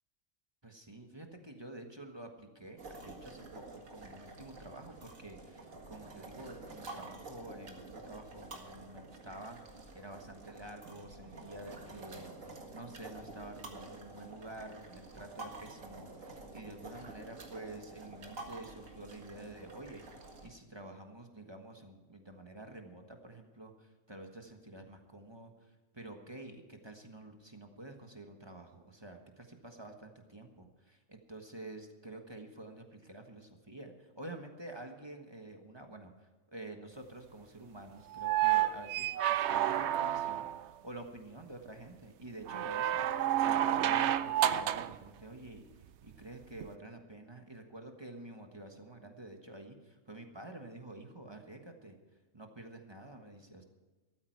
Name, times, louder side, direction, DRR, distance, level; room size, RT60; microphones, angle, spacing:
voice 1, 0.6-43.0 43.5-52.0 52.3-53.6, right 2 dB, 20° right, 4 dB, 1.4 m, -49 dB
sound 1, 2.8-20.5, right 2 dB, 80° right, 2.2 m, -49 dB
sound 2, 38.1-40.6 42.5-45.0 46.6-46.7, right 12 dB, 65° right, 0.8 m, -30 dB
14.0 x 13.5 x 4.6 m, 1.3 s
omnidirectional pair, 1.4 m